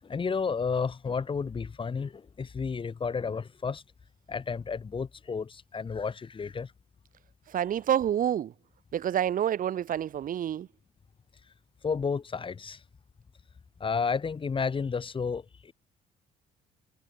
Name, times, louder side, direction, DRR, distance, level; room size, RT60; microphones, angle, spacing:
voice 1, 0.0-3.8 4.3-6.7 11.8-12.8 13.8-15.7, left 5 dB, 30° left, 7.0 m, -32 dB
voice 2, 7.5-8.5 8.9-10.7, right 10 dB, 55° right, 4.0 m, -28 dB
cardioid pair, 110°, 17 cm